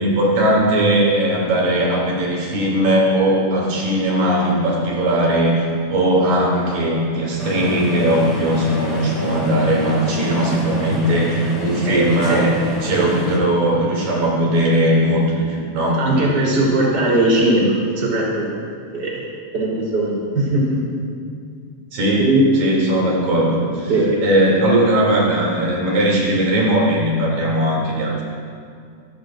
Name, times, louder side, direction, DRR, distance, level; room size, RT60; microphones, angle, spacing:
voice 1, 0.0-12.5 12.8-16.0 21.9-28.2, right 1 dB, 75° right, -4 dB, 4.7 m, -19 dB
sound 1, 7.4-13.4, equal, 35° left, 4.7 m, -28 dB
voice 2, 11.8-12.5 16.0-18.2 18.9-19.2 19.5-20.8 22.2-22.4 23.9-24.2, right 1 dB, 30° right, -5 dB, 4.2 m, -19 dB
29.5 x 14.0 x 2.6 m, 2.2 s
omnidirectional pair, 3.9 m